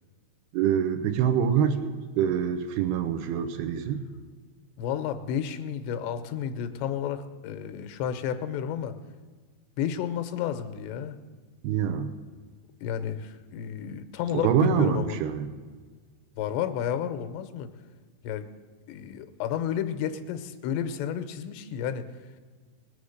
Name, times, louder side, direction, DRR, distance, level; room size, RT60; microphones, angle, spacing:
voice 1, 0.5-4.0 11.6-12.1 14.3-15.5, right 8 dB, 80° right, 8 dB, 2.5 m, -25 dB
voice 2, 4.8-8.9 9.8-11.2 12.8-15.2 16.4-17.7 18.2-18.5 18.9-22.1, left 9 dB, 85° left, 9 dB, 2.9 m, -31 dB
19.5 x 7.1 x 6.5 m, 1.5 s
omnidirectional pair, 4.9 m